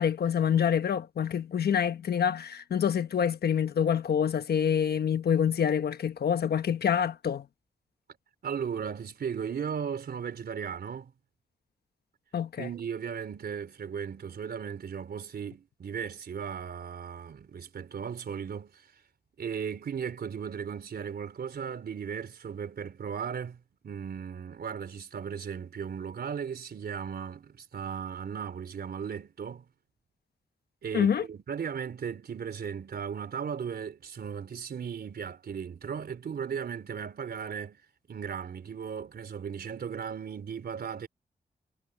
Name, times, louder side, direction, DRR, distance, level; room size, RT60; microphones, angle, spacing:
voice 1, 0.0-7.5 12.3-12.7 30.9-31.2, left 8 dB, 90° left, 1.2 m, -26 dB
voice 2, 8.4-11.1 12.6-18.8 19.4-29.7 30.8-37.8 38.1-41.1, right 7 dB, 85° right, 4.0 m, -36 dB
wide cardioid pair, 130°, 16 cm